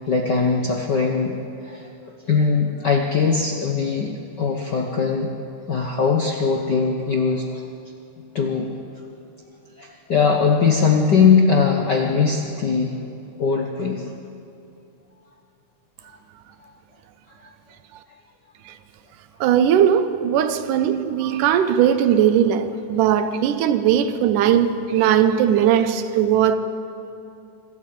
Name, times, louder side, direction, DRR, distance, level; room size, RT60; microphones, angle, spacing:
voice 1, 0.1-1.4 1.6-1.9 2.3-5.3 5.7-7.6 8.3-8.7 9.8-12.9 13.4-14.0, left 5 dB, 65° left, 1.0 m, -20 dB
voice 2, 19.4-26.6, right 9 dB, 85° right, 2.5 m, -19 dB
25.5 x 13.0 x 8.8 m
omnidirectional pair, 3.6 m